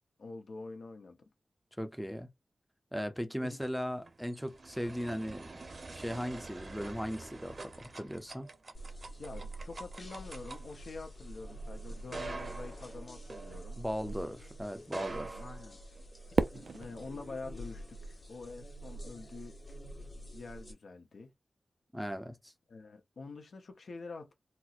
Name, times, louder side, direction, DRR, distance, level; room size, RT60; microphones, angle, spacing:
voice 1, 0.2-1.2 3.4-3.6 9.2-13.8 15.3-15.8 16.5-19.6 20.3-21.3 22.7-24.3, left 3 dB, 75° left, 0.8 m, -46 dB
voice 2, 1.8-2.3 2.9-5.6 5.9-8.5 13.8-15.4 21.9-22.5, equal, ahead, 0.5 m, -38 dB
sound 1, 3.8-14.2 14.8-16.3, right 3 dB, 50° right, 0.7 m, -46 dB
sound 2, 8.7-20.7, right 1 dB, 35° left, 0.8 m, -47 dB
Fireworks, 16.3-18.7, right 4 dB, 80° right, 0.3 m, -35 dB
4.2 x 2.1 x 2.4 m
wide cardioid pair, 115°, 0 cm